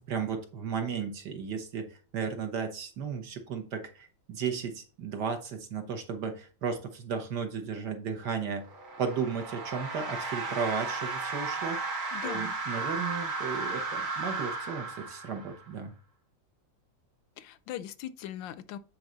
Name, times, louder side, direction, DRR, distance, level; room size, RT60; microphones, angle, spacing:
voice 1, 0.1-8.7 9.0-11.8 12.2-15.9, right 6 dB, 60° right, 1.6 m, -34 dB
sound 1, 8.6-15.7, right 3 dB, 90° right, 2.4 m, -34 dB
voice 2, 12.1-12.5 17.4-18.8, left 11 dB, 75° left, 1.3 m, -40 dB
8.9 x 4.7 x 4.0 m
omnidirectional pair, 2.1 m